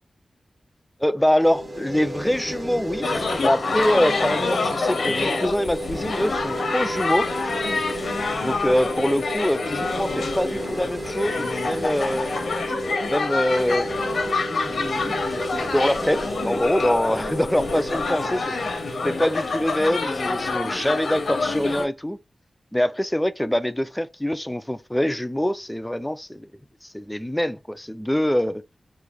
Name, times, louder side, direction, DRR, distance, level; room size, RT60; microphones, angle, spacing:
voice 1, 1.0-7.3 8.4-12.3 13.1-13.9 14.5-18.5 19.0-22.2 22.7-26.5 26.8-28.6, equal, 5° left, 0.3 m, -24 dB
sound 1, 1.4-20.5, equal, 35° right, 1.0 m, -33 dB
sound 2, 3.0-21.9, left 3 dB, 85° left, 0.7 m, -27 dB
3.1 x 2.6 x 3.6 m
wide cardioid pair, 120°, 0 cm